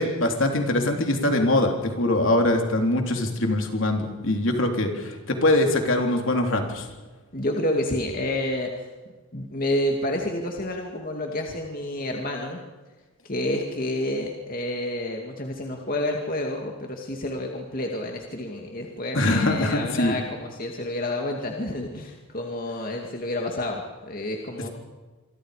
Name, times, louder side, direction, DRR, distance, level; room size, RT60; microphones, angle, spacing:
voice 1, 0.0-6.9 19.1-20.2, left 1 dB, 65° left, 3 dB, 3.4 m, -23 dB
voice 2, 7.3-8.9 9.3-12.6 13.2-24.7, left 1 dB, 40° left, 1 dB, 2.3 m, -29 dB
27.5 x 24.5 x 5.1 m, 1.3 s
head